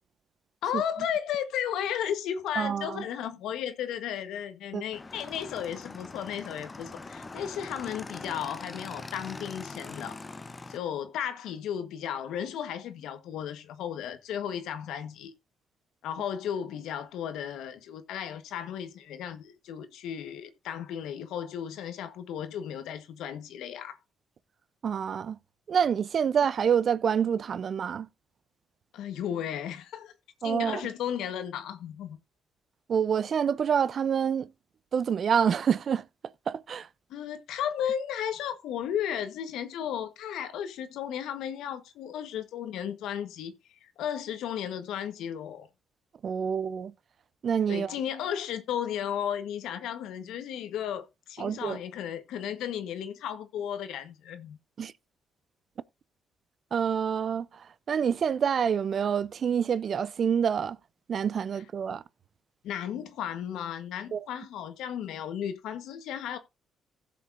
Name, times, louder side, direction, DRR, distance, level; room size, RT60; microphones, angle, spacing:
voice 1, 0.6-10.2 10.7-15.3 16.0-24.0 28.9-30.1 30.4-32.2 37.1-43.5 43.8-45.7 47.7-54.6 62.6-66.4, left 9 dB, 85° left, 1.3 m, -34 dB
voice 2, 2.6-3.0 4.7-4.8 24.8-25.4 25.7-28.1 30.4-30.8 32.9-34.5 34.9-36.0 36.5-36.9 46.2-46.9 47.4-47.9 51.4-51.8 54.8-54.9 56.7-60.8 61.1-62.0 64.1-64.3, right 7 dB, 55° right, 0.6 m, -27 dB
Motorcycle / Engine, 4.9-10.8, left 3 dB, 25° left, 0.9 m, -42 dB
16.0 x 6.9 x 2.6 m
cardioid pair, 90°, 0 cm